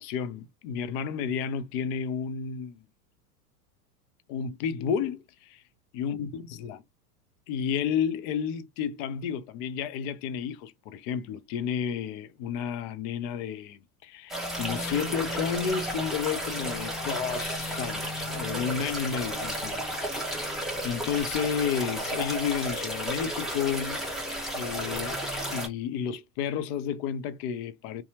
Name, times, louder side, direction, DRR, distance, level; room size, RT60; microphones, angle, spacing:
voice 1, 0.0-2.8 4.3-5.6 5.9-6.8 7.5-24.0 24.5-25.2 25.5-28.0, left 7 dB, 40° left, 0.4 m, -32 dB
sound 1, 14.3-25.7, equal, ahead, 0.8 m, -33 dB
2.7 x 2.2 x 2.8 m
hypercardioid pair, 100°, 47 cm